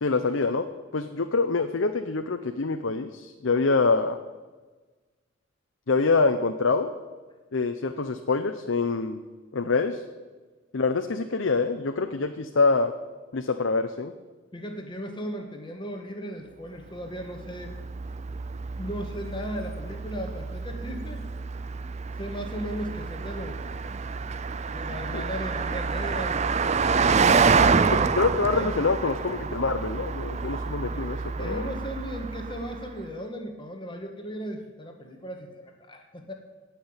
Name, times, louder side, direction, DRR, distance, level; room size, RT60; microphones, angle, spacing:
voice 1, 0.0-0.6 0.9-4.2 5.9-6.9 7.5-9.2 9.5-10.0 10.7-12.9 13.3-14.1 25.1-25.2 27.9-31.7, left 4 dB, 75° left, 6 dB, 0.7 m, -25 dB
voice 2, 14.5-17.8 18.8-21.3 22.2-23.7 24.7-28.7 30.9-36.3, equal, 25° left, 4 dB, 1.5 m, -37 dB
Car passing by, 17.2-32.9, right 5 dB, 35° right, 0.5 m, -27 dB
17.5 x 6.1 x 8.9 m, 1.3 s
head